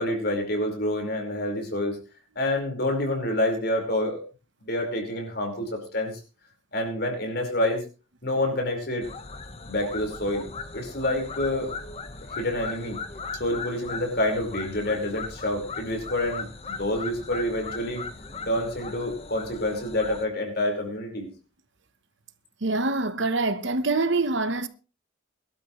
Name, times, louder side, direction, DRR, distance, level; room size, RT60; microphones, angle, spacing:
voice 1, 0.0-2.0 2.3-4.2 4.6-6.2 6.7-7.8 8.2-9.1 9.6-10.5 10.7-11.7 12.2-13.0 13.4-18.0 18.5-21.3, left 1 dB, 50° left, 4.8 m, -27 dB
sound 1, 9.0-20.3, left 4 dB, 30° left, 1.3 m, -38 dB
voice 2, 22.6-24.7, right 3 dB, 60° right, 1.1 m, -25 dB
22.0 x 12.5 x 3.2 m
head